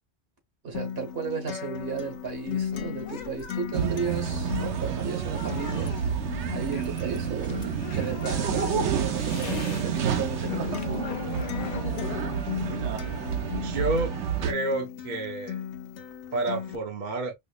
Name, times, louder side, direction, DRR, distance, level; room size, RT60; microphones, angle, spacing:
voice 1, 0.6-6.0 6.5-10.9, right 6 dB, 60° right, 1.4 m, -34 dB
Acoustic guitar, 0.7-16.8, left 9 dB, 85° left, 1.0 m, -37 dB
sound 1, 1.8-9.9 10.2-13.9, left 5 dB, 50° left, 0.6 m, -41 dB
sound 2, 3.7-14.5, right 8 dB, 90° right, 1.0 m, -29 dB
voice 2, 13.6-14.1 14.4-15.6 16.3-17.3, right 2 dB, 45° right, 0.9 m, -29 dB
5.2 x 2.0 x 2.3 m
omnidirectional pair, 1.1 m